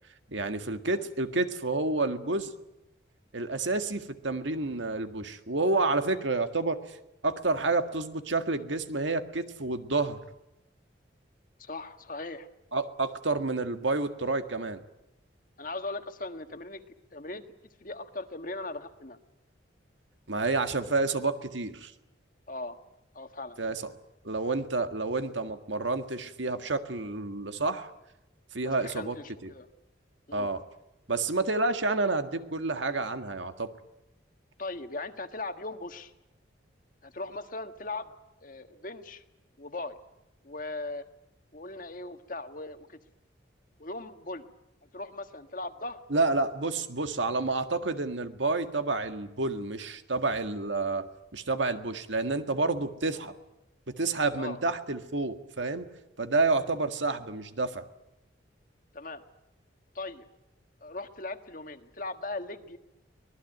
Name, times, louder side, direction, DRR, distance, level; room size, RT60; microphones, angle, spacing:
voice 1, 0.3-2.5 3.3-7.0 7.2-10.2 12.7-14.8 20.3-21.9 23.6-23.9 24.2-27.9 28.5-29.2 29.4-29.5 30.3-30.6 31.1-33.7 46.1-53.3 54.0-55.9 56.2-57.9, right 3 dB, 80° right, 8 dB, 1.8 m, -29 dB
voice 2, 11.6-12.5 15.6-16.8 17.1-17.4 17.8-19.2 22.5-22.8 23.1-23.6 28.6-29.7 30.3-30.5 34.6-36.1 37.0-38.1 38.4-39.2 39.6-40.0 40.4-41.0 41.5-43.0 43.8-44.5 44.9-46.0 54.3-54.6 58.9-59.2 59.9-60.2 60.8-62.8, left 2 dB, 45° left, 8 dB, 1.6 m, -39 dB
25.0 x 19.5 x 9.2 m, 0.91 s
head